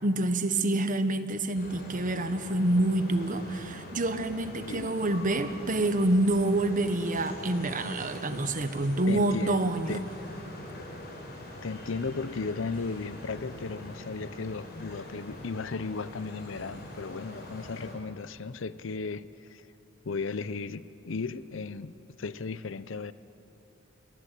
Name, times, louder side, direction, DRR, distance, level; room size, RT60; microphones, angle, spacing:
voice 1, 0.0-10.0, right 1 dB, 40° right, 1.3 m, -27 dB
sound 1, 1.5-17.9, left 1 dB, 50° left, 5.4 m, -43 dB
voice 2, 4.7-5.0 9.1-10.1 11.6-19.6 20.0-23.1, left 4 dB, 70° left, 0.6 m, -35 dB
29.5 x 18.5 x 8.4 m
head